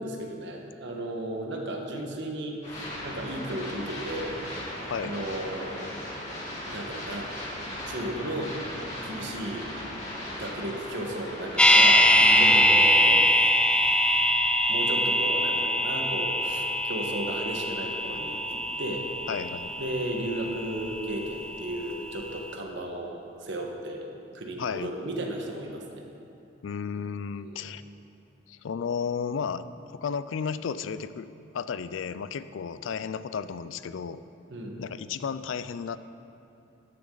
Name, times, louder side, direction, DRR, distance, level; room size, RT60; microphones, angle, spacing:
voice 1, 0.0-4.3 4.6-5.9 6.7-7.3 7.8-8.6 9.0-9.7 10.4-12.1 12.4-13.3 14.7-19.1 19.8-24.0 24.3-26.0 27.3-27.7 34.5-34.8, right 1 dB, 65° right, 1 dB, 1.4 m, -35 dB
sound 1, 2.6-12.6, left 1 dB, 35° left, 3.0 m, -37 dB
sound 2, 11.6-21.6 21.9-22.0, equal, 5° left, 0.4 m, -23 dB
voice 2, 12.2-13.3 19.3-19.7 24.6-24.9 26.6-27.8 28.5-29.6 29.9-31.3 31.5-34.2 34.8-36.0, left 6 dB, 70° left, 14 dB, 0.4 m, -33 dB
13.5 x 10.5 x 3.9 m, 2.7 s
head